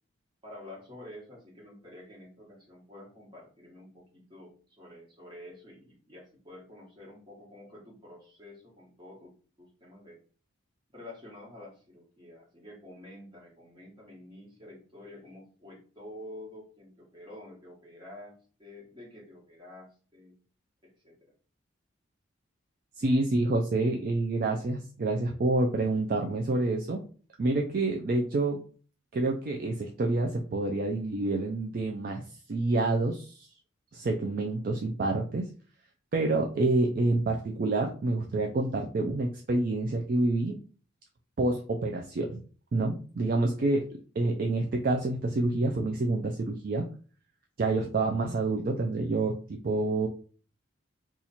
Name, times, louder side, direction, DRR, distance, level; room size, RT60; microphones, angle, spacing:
voice 1, 0.4-10.2 10.9-20.3 20.8-21.3, left 1 dB, 20° right, -3 dB, 1.3 m, -49 dB
voice 2, 23.0-27.0 27.4-28.6 29.1-32.2 32.5-33.5 33.9-35.5 36.1-40.5 41.4-42.4 42.7-43.9 44.2-46.8 47.6-49.4 49.6-50.1, right 2 dB, 45° right, 2 dB, 0.3 m, -28 dB
2.8 x 2.4 x 4.1 m, 0.40 s
head